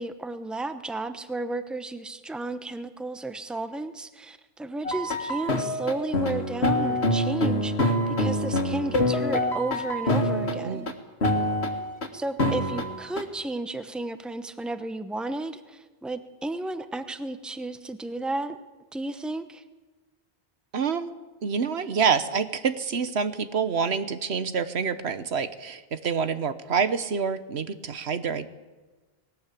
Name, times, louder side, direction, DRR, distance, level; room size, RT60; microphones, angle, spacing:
voice 1, 0.0-10.9 12.1-18.6 18.9-19.6, right 2 dB, ahead, 10 dB, 0.9 m, -33 dB
sound 1, 4.8-10.9 11.2-12.1 12.4-13.2, left 1 dB, 90° left, 2.2 m, -26 dB
voice 2, 20.7-21.1 21.4-28.5, right 6 dB, 85° right, 12 dB, 1.3 m, -27 dB
19.5 x 18.0 x 8.4 m, 1.2 s
omnidirectional pair, 1.1 m